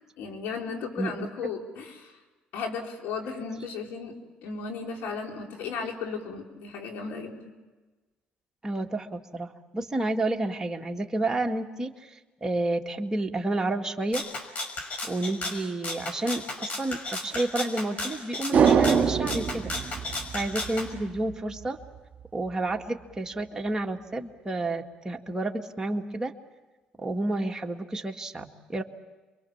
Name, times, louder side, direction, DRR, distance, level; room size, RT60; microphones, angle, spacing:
voice 1, 0.2-2.2 2.5-4.1 4.4-7.5, left 5 dB, 80° left, 2 dB, 4.1 m, -35 dB
voice 2, 1.0-1.5 8.6-14.2 15.0-19.7 20.3-21.8 22.3-26.3 27.0-28.8, right 2 dB, 20° right, 2 dB, 2.1 m, -30 dB
Rattle (instrument), 14.1-20.9, left 2 dB, 45° left, 5.8 m, -34 dB
sound 1, 18.5-21.0 21.3-21.4, right 7 dB, 50° right, 2.4 m, -24 dB
29.0 x 23.5 x 7.3 m, 1.2 s
cardioid pair, 90°, 3 cm